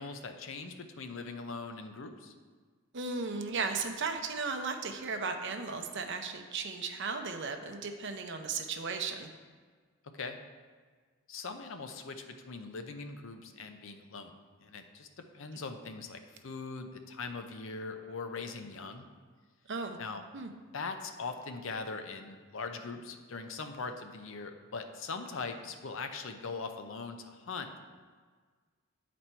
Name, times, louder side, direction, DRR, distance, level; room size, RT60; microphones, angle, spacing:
voice 1, 0.0-2.3 10.2-10.4 11.3-14.3 14.6-15.1 15.3-19.1 20.0-20.2 20.7-27.8, left 4 dB, 60° left, 7 dB, 0.6 m, -41 dB
voice 2, 2.9-9.3 19.7-20.0 20.3-20.5, right 4 dB, 55° right, 5 dB, 0.6 m, -35 dB
9.5 x 4.2 x 4.4 m, 1.5 s
head